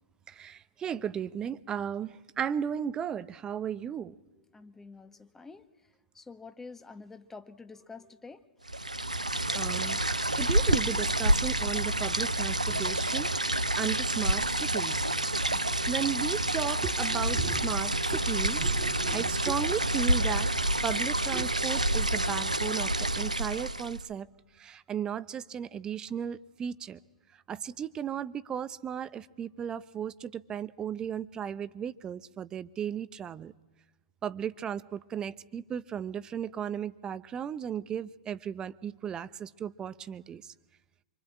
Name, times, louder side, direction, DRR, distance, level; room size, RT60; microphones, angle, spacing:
voice 1, 0.3-4.1 9.5-15.0 15.9-20.5 20.8-24.3 24.6-27.0 27.5-33.5 34.2-40.5, right 8 dB, 20° right, 16 dB, 0.9 m, -35 dB
voice 2, 4.5-5.7 6.1-8.4 15.5-15.7, left 4 dB, 10° left, 9 dB, 1.4 m, -48 dB
sound 1, 8.7-24.1, right 1 dB, 90° right, 0.9 m, -28 dB
26.5 x 25.0 x 8.8 m, 1.1 s
figure-of-eight pair, 105°, 4 cm